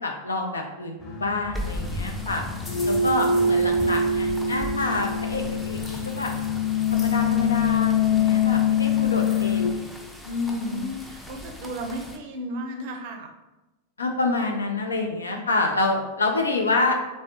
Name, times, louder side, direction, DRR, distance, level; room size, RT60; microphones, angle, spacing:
voice 1, 0.0-2.4 2.8-5.8 6.2-6.3 6.9-9.8 10.3-10.9 14.0-16.9, left 2 dB, 75° left, 3 dB, 0.5 m, -27 dB
sound 1, 1.0-9.7, left 5 dB, 20° left, 0.9 m, -24 dB
sound 2, 1.5-12.2, left 1 dB, 5° left, 0.4 m, -38 dB
voice 2, 3.1-3.9 10.5-13.3, right 1 dB, 50° right, 4 dB, 0.5 m, -35 dB
3.2 x 3.2 x 2.9 m, 1.0 s
figure-of-eight pair, 90°, 0 cm